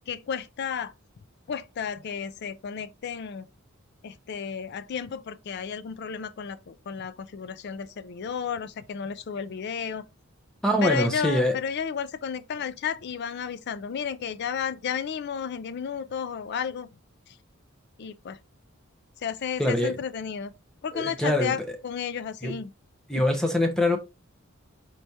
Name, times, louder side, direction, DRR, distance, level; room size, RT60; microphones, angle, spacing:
voice 1, 0.1-0.9 1.5-3.5 4.0-10.0 10.8-16.9 17.3-17.4 18.0-18.4 19.2-20.5 20.8-22.7, left 7 dB, 55° left, 0.4 m, -32 dB
voice 2, 10.6-11.5 19.6-20.0 20.9-21.5 22.4-22.6 23.1-24.0, left 1 dB, 5° left, 0.7 m, -24 dB
4.6 x 3.3 x 2.7 m
head